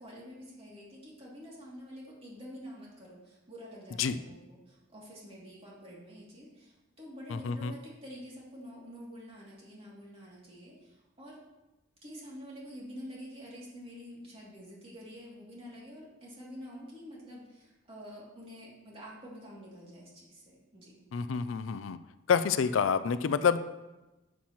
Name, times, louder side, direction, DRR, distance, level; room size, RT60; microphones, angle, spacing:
voice 1, 0.0-11.4 12.0-21.0, equal, 30° right, -5 dB, 2.7 m, -48 dB
voice 2, 7.3-7.7 21.1-22.0 22.3-23.6, left 6 dB, 80° left, 12 dB, 0.4 m, -28 dB
11.5 x 7.3 x 3.1 m, 1.0 s
head